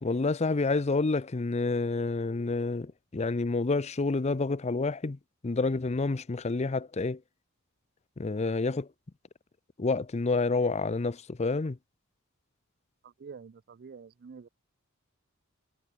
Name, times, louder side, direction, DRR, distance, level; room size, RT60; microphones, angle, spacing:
voice 1, 0.0-5.2 5.4-7.2 8.2-8.9 9.8-11.8, left 3 dB, 30° left, 0.5 m, -28 dB
voice 2, 13.0-14.5, right 5 dB, 45° right, 0.4 m, -47 dB
head